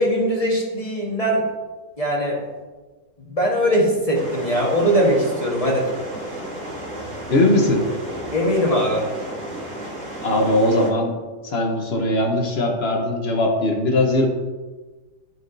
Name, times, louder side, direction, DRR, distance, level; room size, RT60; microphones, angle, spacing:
voice 1, 0.0-1.4 2.0-2.4 3.2-5.9 8.3-9.0, equal, 25° left, -3 dB, 1.3 m, -20 dB
sound 1, 4.1-10.9, right 1 dB, 40° right, 1.8 m, -33 dB
voice 2, 7.3-7.8 10.2-11.1 11.4-14.3, left 1 dB, 45° left, 1 dB, 1.0 m, -20 dB
13.0 x 4.6 x 2.6 m, 1.3 s
omnidirectional pair, 1.8 m